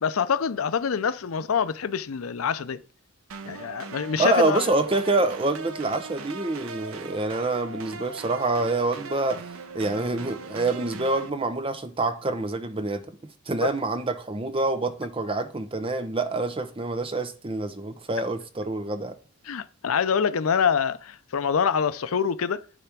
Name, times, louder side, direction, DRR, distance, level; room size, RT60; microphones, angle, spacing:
voice 1, 0.0-2.8 3.5-4.7 13.6-13.7 19.4-22.6, left 6 dB, 80° left, 0.5 m, -25 dB
sound 1, 3.3-11.3, right 4 dB, 85° right, 0.7 m, -39 dB
voice 2, 4.2-9.4 9.7-19.1, right 2 dB, 25° right, 0.7 m, -26 dB
10.0 x 3.4 x 5.9 m
head